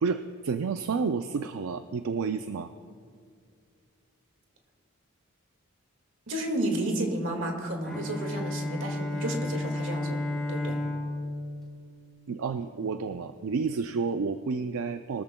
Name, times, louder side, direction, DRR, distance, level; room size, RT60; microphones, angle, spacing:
voice 1, 0.0-2.7 12.3-15.2, right 5 dB, 80° right, 9 dB, 0.4 m, -30 dB
voice 2, 6.3-10.2 10.5-10.8, right 1 dB, 60° right, 2 dB, 2.0 m, -31 dB
Bowed string instrument, 7.8-12.7, left 1 dB, ahead, 2.2 m, -33 dB
22.0 x 13.5 x 2.2 m, 2.2 s
head